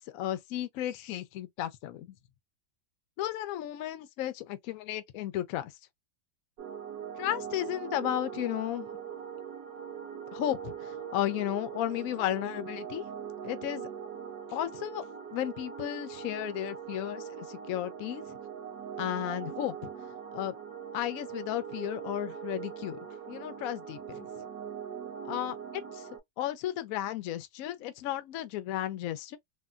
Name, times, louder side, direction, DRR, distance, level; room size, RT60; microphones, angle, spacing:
voice 1, 0.1-2.2 3.2-5.7 7.2-8.9 10.3-13.1 13.4-13.9 14.5-15.0 15.3-18.2 19.0-19.9 20.3-20.5 20.9-23.0 23.3-24.3 25.3-26.1 26.4-29.4, left 12 dB, 85° left, 0.7 m, -34 dB
sound 1, 6.6-26.2, right 8 dB, 60° right, 1.1 m, -41 dB
3.4 x 2.1 x 2.4 m
omnidirectional pair, 2.1 m